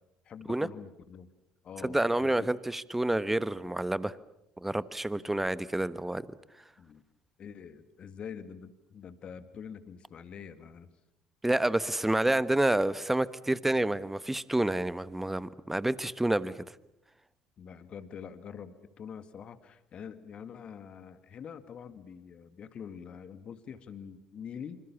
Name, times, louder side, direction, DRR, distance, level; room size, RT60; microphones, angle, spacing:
voice 1, 0.3-1.3 1.6-2.5 6.8-7.0 7.4-10.9 17.6-24.8, left 7 dB, 45° left, 11 dB, 2.1 m, -45 dB
voice 2, 1.8-4.1 4.6-6.3 11.4-16.5, right 1 dB, 10° right, 16 dB, 1.3 m, -28 dB
27.0 x 26.0 x 7.2 m, 0.83 s
figure-of-eight pair, 55°, 2 cm